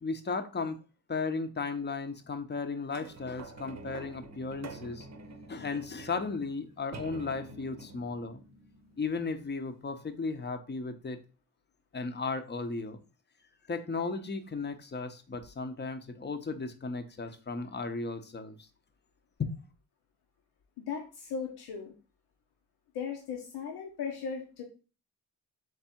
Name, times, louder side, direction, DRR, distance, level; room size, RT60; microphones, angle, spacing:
voice 1, 0.0-0.8 1.1-5.1 5.5-8.4 9.0-11.2 11.9-13.0 13.7-18.6 19.4-19.6, left 4 dB, 30° left, 0.7 m, -35 dB
sound 1, 2.9-9.7 10.3-10.4, right 3 dB, 45° right, 0.8 m, -48 dB
voice 2, 20.8-21.9 22.9-24.6, left 6 dB, 85° left, 0.8 m, -37 dB
3.5 x 3.3 x 4.4 m
cardioid pair, 70°, 38 cm